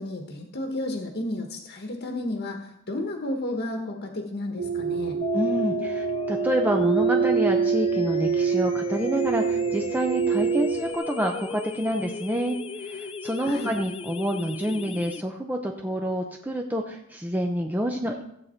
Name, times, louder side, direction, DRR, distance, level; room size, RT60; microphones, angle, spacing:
voice 1, 0.0-5.2 13.4-13.7, left 1 dB, 50° left, 2 dB, 1.3 m, -32 dB
sound 1, 4.6-10.9, right 6 dB, 70° right, 1.0 m, -26 dB
sound 2, 5.2-15.2, left 3 dB, 25° left, 0.4 m, -35 dB
voice 2, 5.3-18.2, equal, 10° right, 2 dB, 0.7 m, -28 dB
15.0 x 8.2 x 4.4 m, 0.77 s
head